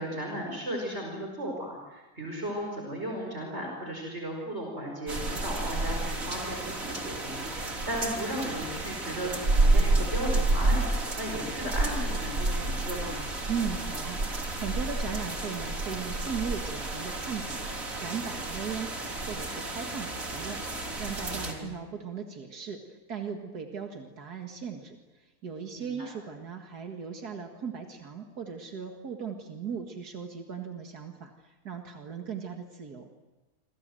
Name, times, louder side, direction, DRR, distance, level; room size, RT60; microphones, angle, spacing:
voice 1, 0.0-10.8 11.2-13.2 21.4-21.6 25.8-26.1, equal, 45° right, 0 dB, 5.4 m, -35 dB
sound 1, 5.1-21.5, right 2 dB, 60° right, 4.0 m, -30 dB
voice 2, 13.5-33.1, right 6 dB, 85° right, 3 dB, 2.4 m, -38 dB
27.0 x 27.0 x 7.7 m, 1.2 s
omnidirectional pair, 1.6 m